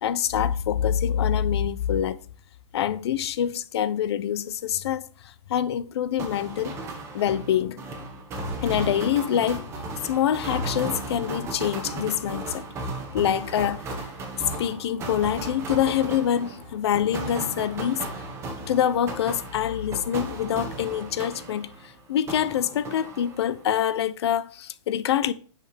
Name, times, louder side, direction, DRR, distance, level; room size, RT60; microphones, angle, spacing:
voice 1, 0.0-2.2 2.7-5.0 5.5-6.8 7.1-7.9 8.6-9.7 10.0-12.6 13.1-14.0 14.4-18.2 18.7-21.7 22.1-25.3, left 10 dB, 55° left, 0.6 m, -25 dB
sound 1, 6.2-21.9 22.3-23.6, right 2 dB, 15° right, 1.3 m, -35 dB
10.0 x 5.8 x 3.4 m
hypercardioid pair, 155°, 17 cm